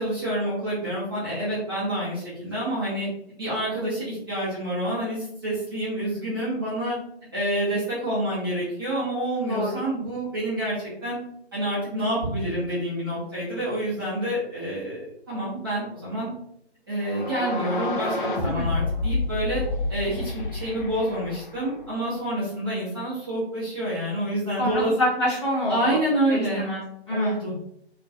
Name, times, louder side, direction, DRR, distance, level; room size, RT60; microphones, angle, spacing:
voice 1, 0.0-3.1 3.4-7.0 7.3-11.2 11.5-16.3 16.9-19.6 19.9-24.9 25.7-26.8 27.1-27.7, right 1 dB, 20° right, -11 dB, 0.7 m, -28 dB
voice 2, 9.5-9.8 18.5-18.7 24.6-26.0 26.3-27.4, left 1 dB, 25° left, -9 dB, 0.9 m, -27 dB
sound 1, 17.0-21.9, left 2 dB, 50° left, 0.5 m, -29 dB
2.3 x 2.2 x 2.6 m, 0.74 s
figure-of-eight pair, 150°, 33 cm